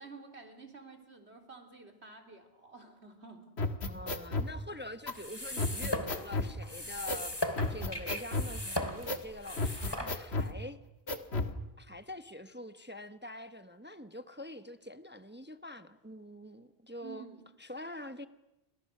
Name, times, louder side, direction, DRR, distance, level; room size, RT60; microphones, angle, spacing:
voice 1, 0.0-3.5 17.0-17.4, right 4 dB, 85° right, 3.8 m, -51 dB
sound 1, 3.6-4.5 5.1-5.2 5.6-6.5 7.1-7.3 7.6-8.5 9.1-9.2 9.6-10.5 11.1-11.5, left 2 dB, 75° left, 1.9 m, -33 dB
voice 2, 3.9-10.8 11.8-17.3 17.6-18.3, left 1 dB, 10° right, 0.9 m, -45 dB
sound 2, 5.1-10.5, left 1 dB, 25° left, 2.2 m, -38 dB
29.5 x 26.0 x 6.6 m
omnidirectional pair, 1.1 m